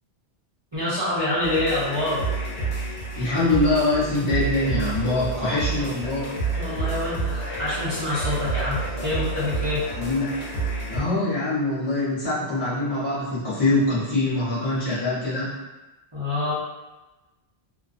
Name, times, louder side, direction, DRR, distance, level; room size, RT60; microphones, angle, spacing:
voice 1, 0.7-2.2 6.5-9.9 16.1-16.5, left 1 dB, 35° right, -10 dB, 0.5 m, -26 dB
sound 1, 1.4-11.0, right 3 dB, 85° left, 0.9 m, -29 dB
voice 2, 3.1-6.2 9.9-10.3 10.9-15.5, left 2 dB, 25° left, -13 dB, 0.7 m, -24 dB
2.4 x 2.2 x 2.4 m, 1.1 s
omnidirectional pair, 1.1 m